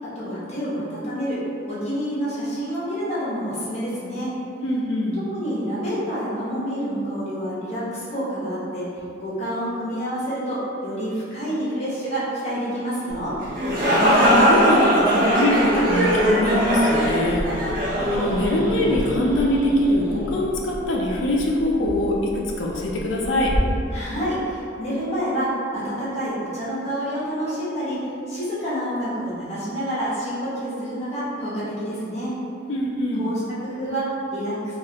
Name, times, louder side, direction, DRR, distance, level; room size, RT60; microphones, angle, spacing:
voice 1, 0.0-1.4 1.7-4.3 5.1-8.9 9.2-13.4 23.9-32.3 33.2-34.8, equal, 35° left, -10 dB, 0.9 m, -28 dB
voice 2, 4.6-5.2 13.8-23.6 32.7-33.3, left 1 dB, 80° left, -1 dB, 0.5 m, -23 dB
Growling, 13.1-23.6, equal, 10° right, 1.4 m, -34 dB
sound 1, 13.4-19.1, equal, 50° right, 0.7 m, -20 dB
3.1 x 2.4 x 2.8 m, 2.6 s
head